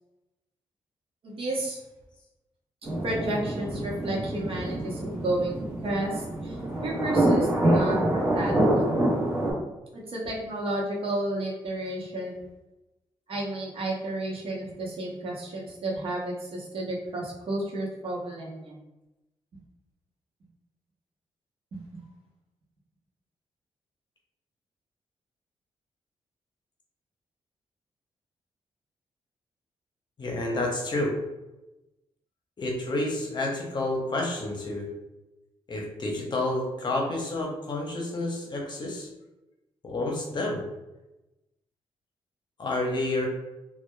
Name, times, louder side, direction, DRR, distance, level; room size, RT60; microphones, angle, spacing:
voice 1, 1.2-1.8 3.0-5.6 5.8-6.6 6.8-8.9 9.9-12.5 13.3-18.8 21.7-22.0, right 1 dB, 65° right, -3 dB, 0.9 m, -32 dB
sound 1, 2.8-9.5, right 1 dB, 20° right, 0.9 m, -26 dB
voice 2, 30.2-31.1 32.6-34.9 35.7-39.1 39.8-40.6 42.6-43.3, left 2 dB, 45° left, 0 dB, 0.7 m, -29 dB
2.8 x 2.2 x 2.2 m, 0.98 s
cardioid pair, 70°, 10 cm